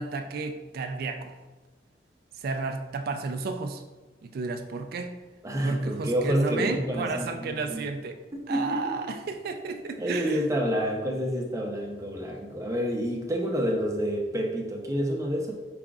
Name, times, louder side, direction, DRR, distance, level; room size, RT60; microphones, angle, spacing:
voice 1, 0.0-1.3 2.4-3.8 4.2-5.1 5.6-8.2 8.5-10.4, right 3 dB, 55° right, 6 dB, 0.3 m, -32 dB
voice 2, 5.4-7.8 8.3-8.8 10.0-15.5, equal, 20° right, 0 dB, 0.6 m, -29 dB
4.9 x 3.6 x 2.3 m, 1.2 s
head